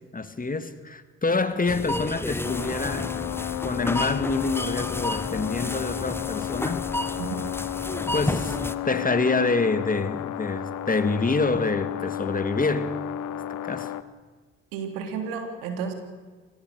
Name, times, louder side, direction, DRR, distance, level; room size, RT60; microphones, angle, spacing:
voice 1, 0.1-3.1 3.6-6.9 8.1-8.6 8.8-13.0 13.6-13.9, left 3 dB, 25° left, 11 dB, 2.1 m, -26 dB
sound 1, 1.7-8.7, left 1 dB, 5° left, 1.3 m, -31 dB
sound 2, 2.4-14.0, left 13 dB, 65° left, 1.0 m, -32 dB
voice 2, 7.2-7.5 14.7-15.9, right 6 dB, 80° right, 5 dB, 3.2 m, -32 dB
25.0 x 18.0 x 6.7 m, 1.4 s
hypercardioid pair, 45°, 32 cm